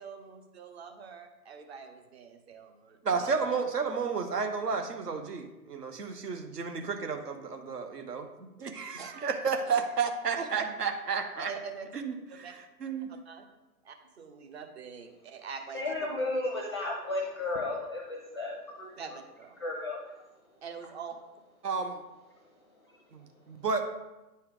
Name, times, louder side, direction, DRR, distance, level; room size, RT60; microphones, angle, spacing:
voice 1, 0.0-3.6 7.4-7.5 8.9-9.3 9.7-9.8 10.3-10.7 11.5-11.9 12.4-12.5 13.3-13.4 13.8-15.9 19.0-19.5 20.6-21.1, right 6 dB, 40° right, 6 dB, 0.9 m, -44 dB
voice 2, 3.0-11.5 11.9-13.2 21.6-22.0 23.1-23.8, right 5 dB, 70° right, 6 dB, 1.1 m, -32 dB
voice 3, 15.7-18.9 19.6-20.1, left 2 dB, 15° left, 0 dB, 0.5 m, -33 dB
9.2 x 4.4 x 3.7 m, 1.0 s
figure-of-eight pair, 135°, 49 cm